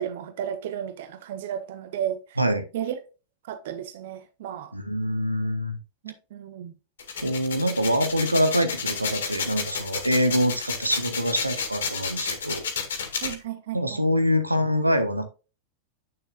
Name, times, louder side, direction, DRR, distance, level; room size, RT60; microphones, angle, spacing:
voice 1, 0.0-2.4 2.7-3.0 3.5-4.7 6.0-6.7 13.2-14.2, right 10 dB, 55° right, 0.9 m, -33 dB
voice 2, 4.7-5.8 7.2-12.7 13.7-15.3, equal, 85° right, 1.0 m, -25 dB
sound 1, 7.0-13.3, left 6 dB, 65° left, 2.0 m, -31 dB
8.7 x 6.7 x 2.3 m
figure-of-eight pair, 90°, 0 cm